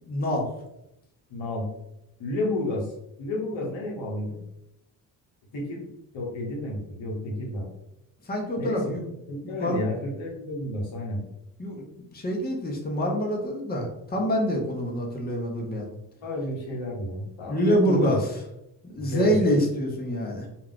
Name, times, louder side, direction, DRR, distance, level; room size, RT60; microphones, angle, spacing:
voice 1, 0.1-0.5 8.3-9.0 9.4-9.8 11.6-11.8 12.1-15.9 17.5-18.4 18.8-20.5, equal, 20° left, 0 dB, 0.8 m, -26 dB
voice 2, 1.3-1.7 2.2-2.9 3.2-4.4 5.5-5.9 6.1-7.7 8.6-9.0 9.3-11.2 16.2-18.2 19.0-19.4, left 1 dB, 75° left, -2 dB, 1.0 m, -31 dB
2.4 x 2.3 x 3.5 m, 0.84 s
supercardioid pair, 50°, 47 cm